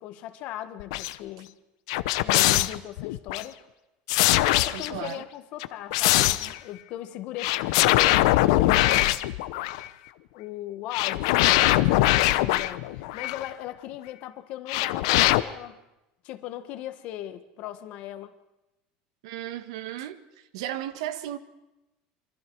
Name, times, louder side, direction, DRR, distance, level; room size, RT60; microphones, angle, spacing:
voice 1, 0.0-1.5 2.2-3.6 4.3-9.2 10.3-15.8 16.2-18.3, left 13 dB, 45° left, 1.4 m, -38 dB
sound 1, 0.8-1.1 1.9-3.4 4.1-5.1 5.6-6.6 7.4-9.9 10.9-13.5 14.7-15.4, left 17 dB, 70° left, 0.9 m, -22 dB
voice 2, 4.7-5.2 19.2-21.4, right 12 dB, 80° right, 1.5 m, -35 dB
27.0 x 24.5 x 4.7 m
cardioid pair, 175°, 3 cm